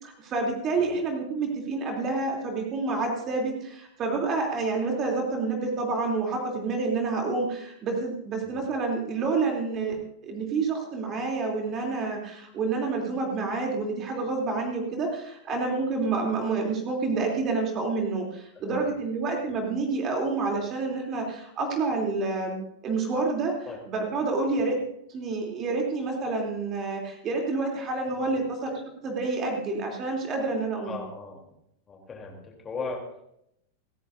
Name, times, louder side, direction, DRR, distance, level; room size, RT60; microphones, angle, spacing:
voice 1, 0.0-10.0 10.2-22.6 22.8-23.5 23.9-24.8 25.1-28.7 29.0-31.0, right 3 dB, 30° right, 1 dB, 3.2 m, -28 dB
voice 2, 28.1-28.4 30.8-31.5 31.9-33.2, left 4 dB, 20° left, 0 dB, 3.4 m, -38 dB
28.5 x 10.0 x 2.7 m, 0.77 s
figure-of-eight pair, 90°, 0 cm